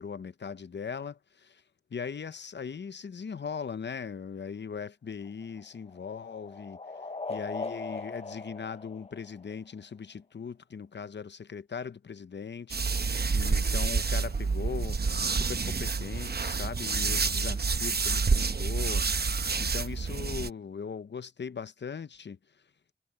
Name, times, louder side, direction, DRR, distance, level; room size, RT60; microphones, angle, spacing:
voice 1, 0.0-1.6 1.9-6.8 7.3-15.0 15.3-19.0 19.6-22.4, left 6 dB, 80° left, 0.8 m, -39 dB
sound 1, 5.1-9.8, left 3 dB, 35° left, 0.7 m, -40 dB
sound 2, 12.7-20.5, right 4 dB, 60° right, 0.9 m, -28 dB
wide cardioid pair, 50°, 18 cm